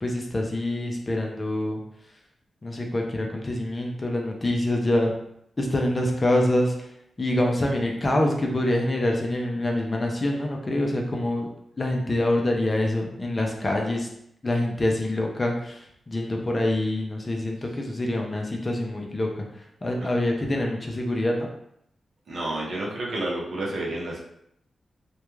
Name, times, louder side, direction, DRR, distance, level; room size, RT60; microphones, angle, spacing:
voice 1, 0.0-1.8 2.6-5.1 5.6-6.9 7.2-11.5 11.8-14.1 14.4-21.5, left 1 dB, 25° left, 1 dB, 0.4 m, -25 dB
voice 2, 22.3-24.2, right 1 dB, 65° right, -4 dB, 0.7 m, -30 dB
2.3 x 2.2 x 3.0 m, 0.74 s
wide cardioid pair, 155°, 0 cm